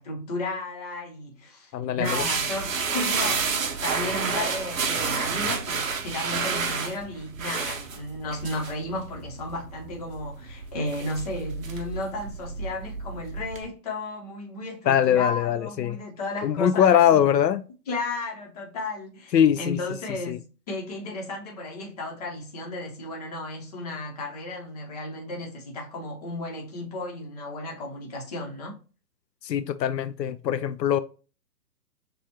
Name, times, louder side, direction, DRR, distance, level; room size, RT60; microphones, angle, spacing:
voice 1, 0.0-17.3 17.9-20.4 20.7-28.7, left 2 dB, 25° left, 1.0 m, -34 dB
voice 2, 1.7-2.2 14.9-16.0 16.4-17.6 19.3-19.8 20.3-20.4 29.4-31.0, left 9 dB, 80° left, 0.5 m, -22 dB
sound 1, 2.0-13.7, right 5 dB, 50° right, 1.0 m, -30 dB
6.6 x 2.4 x 2.9 m
hypercardioid pair, 160°, 49 cm